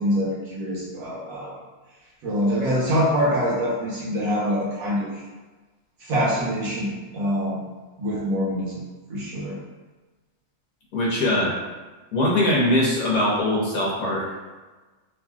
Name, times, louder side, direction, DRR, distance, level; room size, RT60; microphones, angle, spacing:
voice 1, 0.0-1.5 2.2-5.2 6.0-7.6 8.0-9.6, equal, 70° right, -6 dB, 1.2 m, -25 dB
voice 2, 10.9-11.5 12.1-14.3, left 1 dB, 80° left, -4 dB, 1.2 m, -21 dB
3.0 x 2.4 x 2.3 m, 1.3 s
omnidirectional pair, 1.6 m